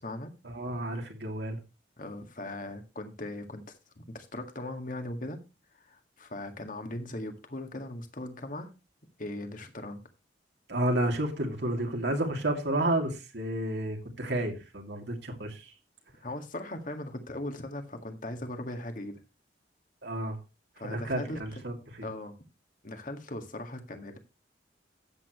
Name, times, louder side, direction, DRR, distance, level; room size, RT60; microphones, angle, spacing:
voice 1, 0.4-1.6 10.7-15.7 20.0-20.4 20.8-22.1, right 1 dB, 70° right, 2.7 m, -31 dB
voice 2, 2.0-3.6 4.0-5.4 5.8-8.7 9.2-10.0 16.2-19.2 20.8-21.6 22.0-22.4 22.8-24.2, left 1 dB, 45° left, 1.9 m, -39 dB
13.0 x 8.8 x 3.1 m
head